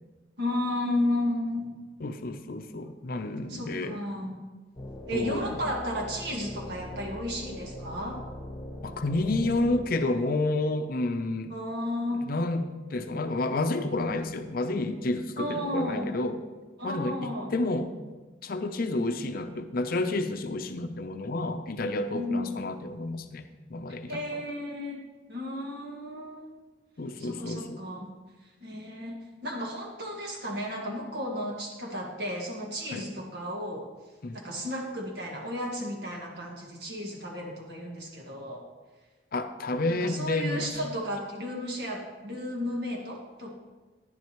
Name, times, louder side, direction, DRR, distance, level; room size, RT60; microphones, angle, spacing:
voice 1, 0.4-1.8 3.5-4.4 5.1-8.2 11.5-12.3 15.4-16.1 16.8-17.5 22.1-22.5 24.1-25.0 25.3-26.6 27.2-28.1 28.6-33.8 34.3-38.6 39.9-43.5, left 1 dB, 65° right, 0 dB, 1.8 m, -33 dB
voice 2, 2.0-4.0 5.1-5.6 8.8-11.5 12.3-12.7 12.9-16.4 16.8-17.9 18.4-23.4 23.7-24.4 27.0-27.8 32.9-33.1 34.2-34.4 39.3-40.7, left 2 dB, 55° left, 8 dB, 0.6 m, -30 dB
sound 1, 4.8-9.9, left 1 dB, 25° left, 1.1 m, -41 dB
10.5 x 10.0 x 3.1 m, 1.3 s
head